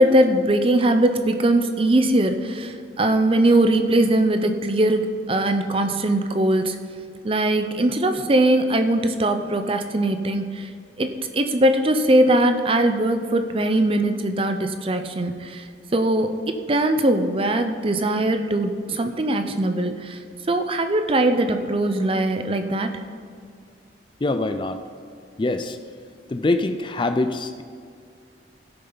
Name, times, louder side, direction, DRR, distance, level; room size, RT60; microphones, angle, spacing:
voice 1, 0.0-6.8 7.2-10.7 11.0-15.7 15.9-20.2 20.5-23.0, right 1 dB, 30° right, 7 dB, 0.6 m, -21 dB
voice 2, 24.2-24.8 25.4-25.8 26.3-27.6, left 2 dB, 25° left, 9 dB, 0.4 m, -24 dB
16.5 x 6.7 x 3.9 m, 2.2 s
head